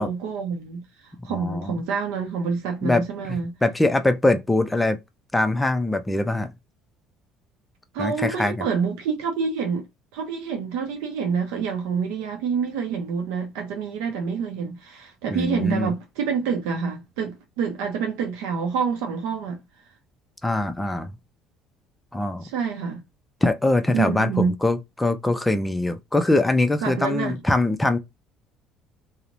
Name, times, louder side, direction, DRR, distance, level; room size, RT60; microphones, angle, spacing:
voice 1, 0.0-3.5 7.9-9.8 10.1-19.6 22.4-23.0 23.9-24.6 26.8-27.3, right 6 dB, 80° right, 0.5 m, -27 dB
voice 2, 1.3-1.8 2.8-3.0 3.3-5.0 5.3-6.5 8.0-8.7 15.3-15.9 20.4-21.1 22.1-22.4 23.4-28.0, left 2 dB, 10° left, 0.4 m, -23 dB
2.9 x 2.0 x 2.5 m
supercardioid pair, 75°, 0 cm